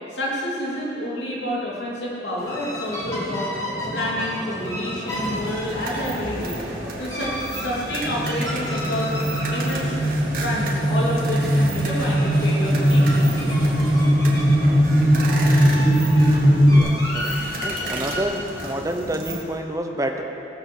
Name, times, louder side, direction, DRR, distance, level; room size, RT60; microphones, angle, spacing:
voice 1, 0.1-3.5 3.9-6.6 7.0-9.1 9.5-9.9 10.4-13.4, left 1 dB, 75° left, -5 dB, 3.0 m, -29 dB
sound 1, 2.4-18.2, equal, 15° left, 2.1 m, -33 dB
sound 2, 5.1-19.4, right 2 dB, 50° right, 2.0 m, -33 dB
sound 3, 8.0-16.8, equal, 55° left, 3.6 m, -19 dB
voice 2, 16.7-17.4 17.6-20.2, right 1 dB, 20° right, 4 dB, 0.9 m, -28 dB
17.5 x 8.0 x 6.3 m, 2.8 s
head